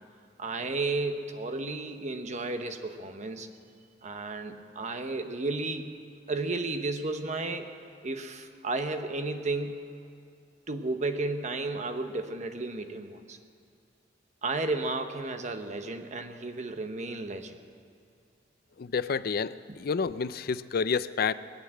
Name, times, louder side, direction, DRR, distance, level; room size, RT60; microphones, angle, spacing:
voice 1, 0.4-3.5 4.0-6.0 6.3-7.7 8.0-9.8 10.7-13.4 14.4-17.6, right 3 dB, 40° right, 7 dB, 1.0 m, -33 dB
voice 2, 18.8-21.3, left 5 dB, 55° left, 15 dB, 0.4 m, -29 dB
21.0 x 8.5 x 7.6 m, 2.5 s
head